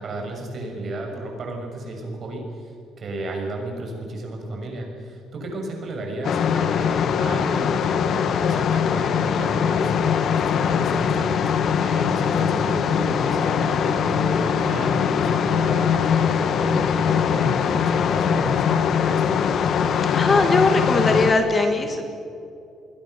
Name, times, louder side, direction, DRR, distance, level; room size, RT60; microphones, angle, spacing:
voice 1, 0.0-2.7 3.0-11.5 11.8-19.3, right 1 dB, 40° right, 2 dB, 6.6 m, -32 dB
sound 1, 6.2-21.3, left 7 dB, 50° left, 1.4 m, -21 dB
voice 2, 20.1-22.1, left 3 dB, 25° left, 6 dB, 1.8 m, -20 dB
29.0 x 21.5 x 6.7 m, 2.7 s
cardioid pair, 150°, 0 cm